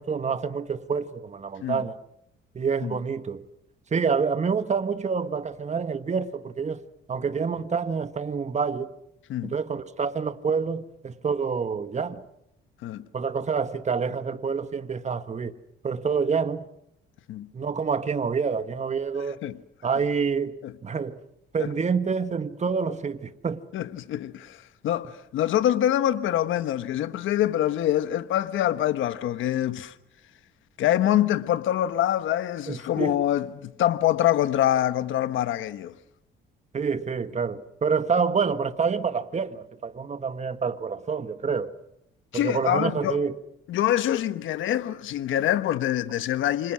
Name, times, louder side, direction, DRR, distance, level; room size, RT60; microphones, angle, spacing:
voice 1, 0.0-2.0 2.5-3.4 3.9-6.8 7.1-8.9 9.5-12.2 13.1-15.5 15.8-16.7 17.5-19.4 19.8-21.2 21.5-23.6 32.7-33.2 36.7-41.7 42.3-43.3, right 5 dB, 35° right, 1.6 m, -27 dB
voice 2, 23.7-24.6 24.8-29.9 30.8-35.9 42.3-43.2 43.7-46.7, left 12 dB, 80° left, 1.3 m, -25 dB
29.0 x 26.0 x 6.3 m
cardioid pair, 90°, 20 cm